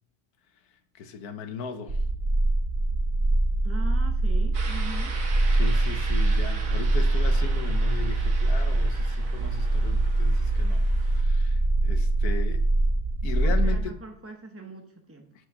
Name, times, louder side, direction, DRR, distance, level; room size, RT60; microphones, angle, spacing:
voice 1, 0.9-2.0 5.5-12.7 13.2-14.0, left 6 dB, 80° left, 1.3 m, -37 dB
sound 1, 1.9-13.8, right 2 dB, 40° right, 1.9 m, -23 dB
voice 2, 3.6-5.2 13.4-15.3, right 2 dB, 20° right, 0.4 m, -41 dB
sound 2, 4.5-11.2, right 4 dB, 60° right, 1.7 m, -41 dB
7.7 x 5.9 x 6.0 m
omnidirectional pair, 1.6 m